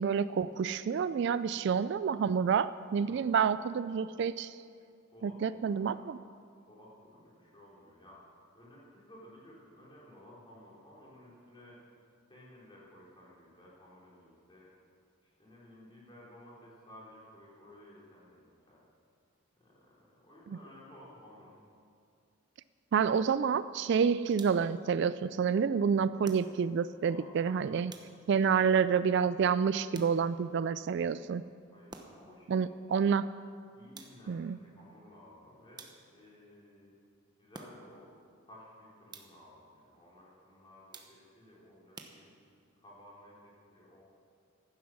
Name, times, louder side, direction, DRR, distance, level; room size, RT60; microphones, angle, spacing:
voice 1, 0.0-4.6 5.2-6.2 22.9-27.9 28.3-31.4 32.5-33.3 34.3-34.6, right 6 dB, 55° right, 15 dB, 0.3 m, -28 dB
voice 2, 3.0-3.6 5.1-6.0 6.7-8.2 8.5-11.8 12.3-14.7 15.2-18.8 19.5-21.6 27.0-28.0 28.4-28.7 31.7-33.1 33.7-37.0 37.4-38.1 38.4-42.3 42.8-44.0, left 1 dB, 25° left, -5 dB, 3.6 m, -55 dB
sound 1, 24.3-24.8 26.2-26.9 27.9-28.5 29.9-30.5 31.9-32.4 33.9-34.5 35.8-36.3 37.5-38.1 39.1-39.6 40.9-41.4 41.9-42.7, right 3 dB, 20° right, 0.9 m, -52 dB
15.5 x 11.0 x 6.2 m, 2.3 s
head